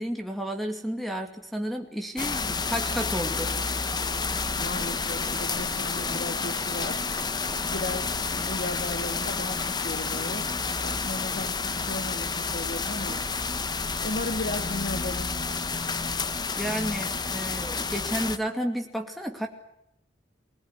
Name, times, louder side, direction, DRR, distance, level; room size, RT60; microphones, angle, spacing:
voice 1, 0.0-3.5 16.6-19.5, equal, ahead, 5 dB, 2.6 m, -32 dB
sound 1, 2.2-18.4, left 4 dB, 25° left, 1.0 m, -30 dB
voice 2, 4.6-7.5 7.7-10.5 10.8-13.2 14.0-15.4, left 2 dB, 55° left, 7 dB, 1.8 m, -35 dB
25.0 x 19.5 x 9.9 m, 0.79 s
head